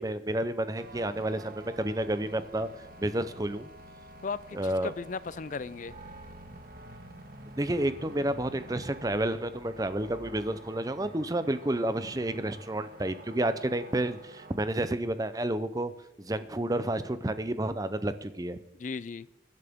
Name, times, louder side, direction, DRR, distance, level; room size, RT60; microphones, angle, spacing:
voice 1, 0.0-2.7 3.0-3.7 4.5-4.9 7.6-15.9 16.2-18.6, right 1 dB, 20° right, 12 dB, 0.6 m, -30 dB
sound 1, 0.7-14.6, right 1 dB, 50° right, 1.6 m, -48 dB
voice 2, 4.2-5.9 18.8-19.3, left 5 dB, 45° left, 17 dB, 0.4 m, -36 dB
23.0 x 10.5 x 3.6 m, 0.94 s
head